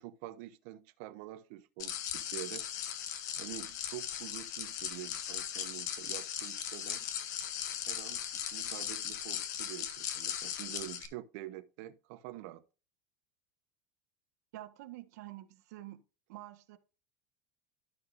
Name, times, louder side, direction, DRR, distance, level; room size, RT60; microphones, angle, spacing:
voice 1, 0.0-2.7 3.4-7.1 7.9-12.6, right 15 dB, 60° right, 1.0 m, -47 dB
sound 1, 1.8-11.1, left 10 dB, 90° left, 1.6 m, -38 dB
voice 2, 14.5-16.0 16.3-16.8, right 15 dB, 80° right, 1.4 m, -47 dB
12.5 x 6.5 x 2.6 m
supercardioid pair, 165°, 9 cm